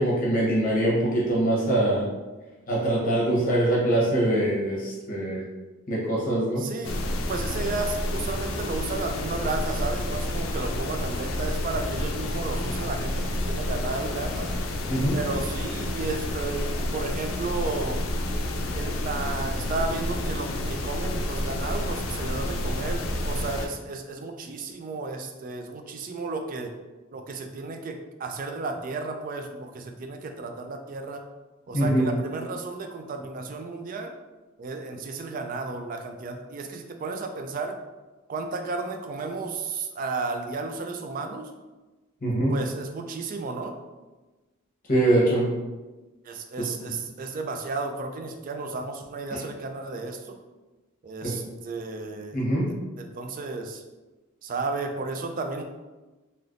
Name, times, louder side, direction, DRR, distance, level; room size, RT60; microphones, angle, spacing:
voice 1, 0.0-2.1 2.7-5.4 5.9-6.6 14.9-15.2 31.7-32.1 42.2-42.5 44.9-45.5 46.9-47.0 49.3-49.4 51.2-51.3 52.3-52.6, right 1 dB, 40° left, -5 dB, 0.9 m, -23 dB
voice 2, 6.6-14.5 15.1-18.1 18.7-26.8 27.1-31.2 31.7-34.1 34.6-37.8 38.3-41.5 42.2-43.8 46.2-50.4 51.0-52.4 52.7-53.8 54.4-55.6, right 3 dB, 40° right, 5 dB, 0.3 m, -33 dB
sound 1, 6.8-23.7, left 1 dB, 80° left, 0.4 m, -29 dB
3.2 x 2.9 x 2.5 m, 1.2 s
head